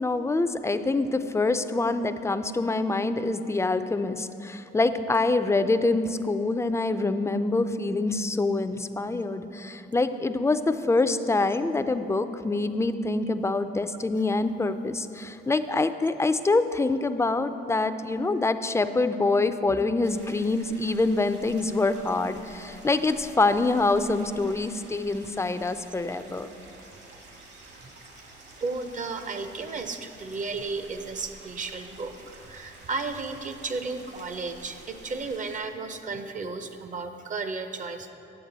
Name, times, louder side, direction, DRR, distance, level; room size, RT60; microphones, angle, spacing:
voice 1, 0.0-26.5, left 3 dB, 15° left, 10 dB, 0.3 m, -25 dB
sound 1, 20.0-35.6, right 2 dB, 60° right, 1.4 m, -49 dB
voice 2, 28.6-32.1 32.4-38.1, right 4 dB, 40° right, 8 dB, 0.6 m, -33 dB
8.7 x 7.4 x 3.9 m, 2.9 s
cardioid pair, 90°, 20 cm